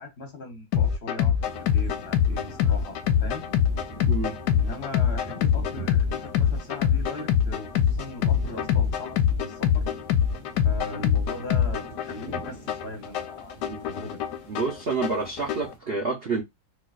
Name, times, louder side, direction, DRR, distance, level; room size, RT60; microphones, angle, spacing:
voice 1, 0.0-1.4 1.7-3.5 4.5-9.9 10.6-14.2, left 1 dB, 50° left, 0.8 m, -39 dB
sound 1, 0.7-15.7, left 8 dB, 75° left, 1.0 m, -24 dB
sound 2, 1.4-15.8, right 2 dB, 35° right, 0.7 m, -44 dB
voice 2, 14.5-16.4, right 4 dB, 80° right, 0.5 m, -28 dB
4.5 x 2.4 x 2.3 m
omnidirectional pair, 2.2 m